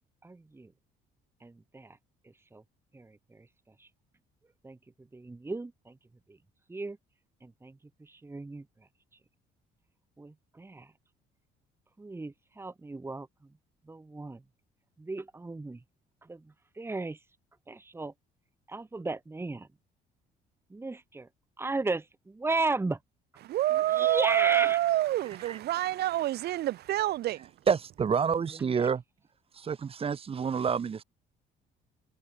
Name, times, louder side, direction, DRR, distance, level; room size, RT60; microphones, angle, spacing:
voice 1, 0.2-0.7 1.4-2.0 2.5-2.6 2.9-3.5 3.8-3.9 4.6-4.8 5.1-6.0 6.3-6.4 6.7-7.0 7.4-8.6 10.2-10.9 12.0-13.3 13.9-14.4 15.0-15.8 16.2-17.2 17.7-18.1 18.7-19.7 20.7-21.3 21.6-23.0 23.9-24.8 28.8-28.9, right 3 dB, 15° right, 2.2 m, -35 dB
voice 2, 23.4-27.5, right 14 dB, 70° right, 3.7 m, -27 dB
voice 3, 27.7-29.0 29.5-31.0, right 6 dB, 35° right, 2.1 m, -28 dB
cardioid pair, 110°, 17 cm